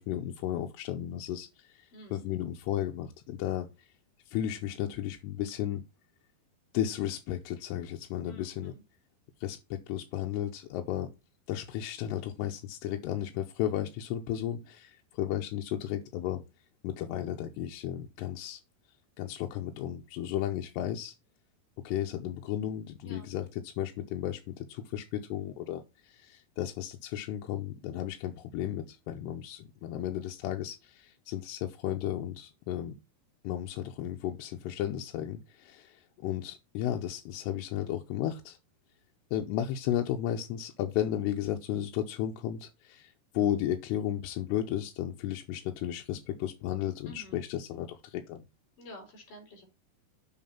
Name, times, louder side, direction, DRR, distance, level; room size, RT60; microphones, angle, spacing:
voice 1, 0.0-1.5 1.8-1.9 2.1-3.7 4.3-5.8 6.7-8.7 9.4-11.1 11.5-16.4 16.8-18.6 19.2-21.1 21.8-32.9 33.4-38.6 39.3-48.4, left 11 dB, 90° left, 2.8 m, -34 dB
voice 2, 1.9-2.2 8.2-8.8 23.0-23.3 47.1-47.4 48.8-49.7, equal, 55° left, 4.4 m, -49 dB
7.5 x 5.1 x 5.6 m
omnidirectional pair, 4.8 m